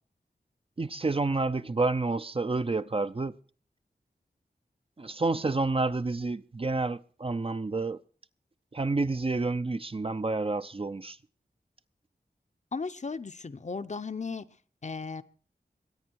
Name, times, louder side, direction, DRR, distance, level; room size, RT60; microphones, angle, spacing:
voice 1, 0.8-3.3 5.0-8.0 8.7-11.2, right 3 dB, 35° right, 0.6 m, -29 dB
voice 2, 12.7-14.5 14.8-15.2, left 4 dB, 45° left, 0.7 m, -35 dB
22.5 x 9.3 x 4.6 m
wide cardioid pair, 60°, 17 cm